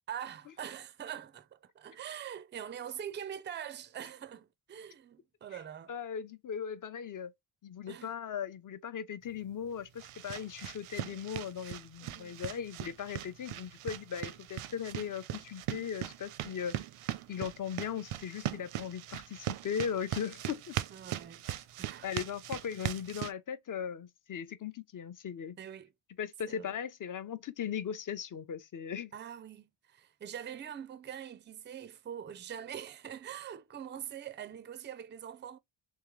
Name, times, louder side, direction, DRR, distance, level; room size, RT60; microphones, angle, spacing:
voice 1, 0.1-5.9 7.9-8.1 12.0-12.4 20.9-21.4 21.8-22.1 25.6-25.9 26.5-26.7 29.1-35.6, right 9 dB, 25° right, 0.4 m, -44 dB
voice 2, 5.9-7.3 7.6-16.8 17.3-20.8 21.5-21.6 22.0-25.6 26.2-29.1, left 8 dB, 40° left, 0.5 m, -38 dB
sound 1, 9.3-23.3, right 12 dB, 85° right, 0.6 m, -40 dB
3.6 x 3.2 x 3.0 m
wide cardioid pair, 135°, 49 cm